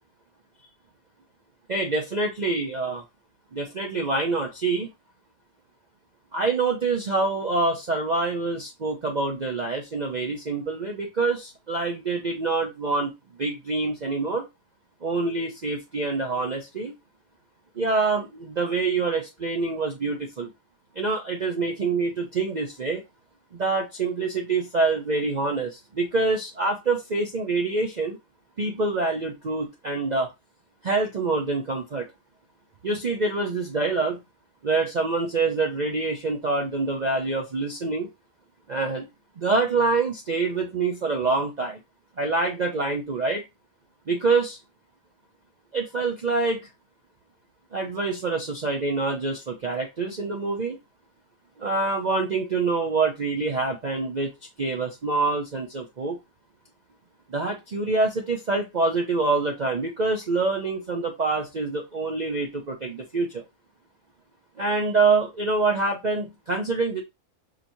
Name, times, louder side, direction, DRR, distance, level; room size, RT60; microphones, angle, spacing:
voice 1, 1.7-3.0 3.5-4.9 6.3-14.5 15.0-16.9 17.8-20.5 21.0-23.0 23.5-28.2 28.6-30.3 30.8-32.1 32.8-34.2 34.6-38.1 38.7-39.1 39.4-41.8 42.2-43.4 44.1-44.6 45.7-46.7 47.7-50.8 51.6-54.3 54.6-56.2 57.3-63.4 64.6-67.0, right 3 dB, 45° right, 1 dB, 0.6 m, -26 dB
4.9 x 2.9 x 2.6 m, 0.22 s
omnidirectional pair, 1.6 m